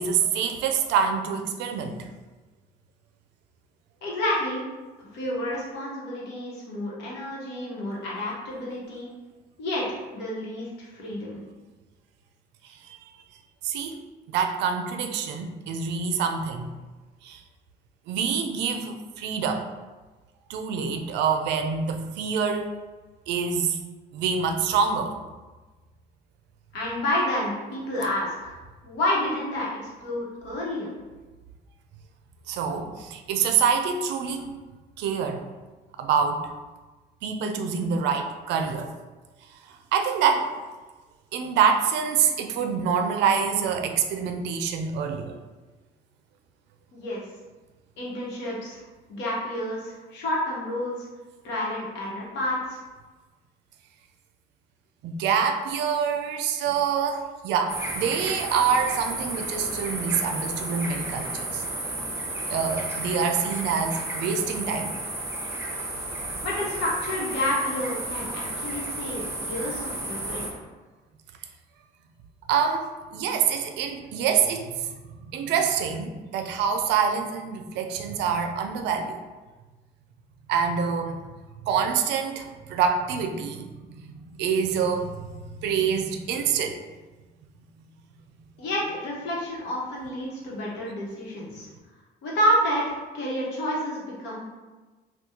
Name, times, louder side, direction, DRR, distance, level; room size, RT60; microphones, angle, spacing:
voice 1, 0.0-2.0 12.8-13.0 13.6-13.9 14.3-16.7 17.2-17.4 18.1-19.7 20.5-22.7 23.3-23.8 24.1-25.1 32.5-34.5 35.0-35.4 36.0-36.4 37.2-38.9 39.9-40.5 41.3-45.4 55.0-61.6 62.5-64.9 72.5-74.9 75.3-79.2 80.5-81.2 81.6-83.8 84.1-86.8, right 6 dB, 80° right, 5 dB, 0.4 m, -26 dB
voice 2, 4.0-4.6 5.1-9.1 9.6-11.4 26.7-28.6 28.8-30.9 46.9-47.2 48.0-48.8 49.1-51.1 51.4-52.8 66.4-70.4 88.6-91.7 92.2-94.6, left 1 dB, 85° left, -4 dB, 1.1 m, -29 dB
sound 1, 57.7-70.5, right 1 dB, 15° right, 0.7 m, -32 dB
2.8 x 2.3 x 3.6 m, 1.2 s
cardioid pair, 105°, 18 cm